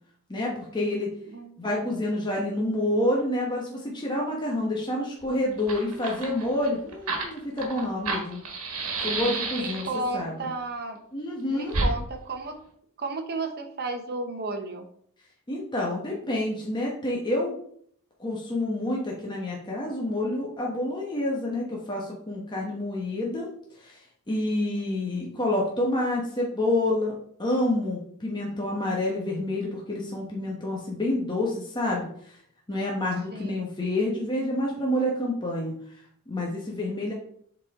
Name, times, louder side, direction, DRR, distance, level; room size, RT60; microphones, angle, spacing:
voice 1, 0.3-1.1 1.6-8.4 9.0-9.9 10.1-10.3 11.1-11.8 15.5-17.6 18.2-23.5 23.8-24.0 24.3-27.1 27.4-32.4 32.7-35.7 36.3-37.1, left 1 dB, 20° left, -3 dB, 1.1 m, -28 dB
voice 2, 1.3-1.8 9.5-11.0 11.5-12.6 13.0-14.9 24.7-25.0 33.3-33.7, right 2 dB, 45° right, 6 dB, 0.9 m, -33 dB
Fire, 5.2-5.3 5.5-10.1 11.7-11.9, right 3 dB, 75° right, 1.5 m, -30 dB
7.3 x 4.2 x 3.6 m, 0.64 s
head